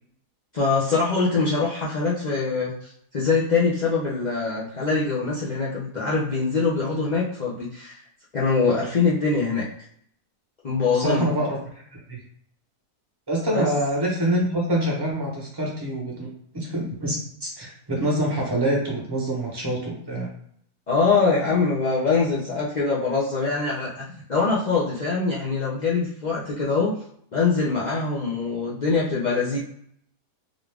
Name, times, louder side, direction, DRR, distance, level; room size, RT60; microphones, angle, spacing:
voice 1, 0.5-8.0 8.3-9.7 10.6-11.3 13.5-13.7 20.9-24.0 24.3-26.9 27.3-29.6, left 4 dB, 75° left, -7 dB, 0.4 m, -23 dB
voice 2, 10.9-11.6 12.1-12.2 13.3-16.3 16.5-20.3, right 1 dB, 20° right, -3 dB, 0.8 m, -25 dB
3.9 x 2.4 x 3.3 m, 0.67 s
omnidirectional pair, 1.8 m